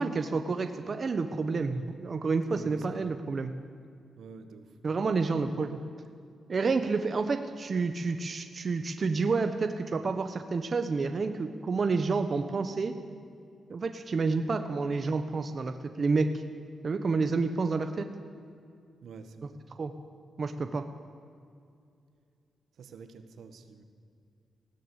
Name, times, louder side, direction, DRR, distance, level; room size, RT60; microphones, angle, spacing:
voice 1, 0.0-3.5 4.8-5.8 6.5-12.9 13.7-16.4 16.8-18.0 19.8-19.9 20.4-20.8, right 4 dB, 40° right, 7 dB, 1.1 m, -29 dB
voice 2, 2.4-3.1 4.2-4.8 19.0-19.6 22.8-23.8, right 5 dB, 80° right, 8 dB, 1.7 m, -47 dB
20.0 x 16.0 x 8.2 m, 2.4 s
wide cardioid pair, 125°, 0 cm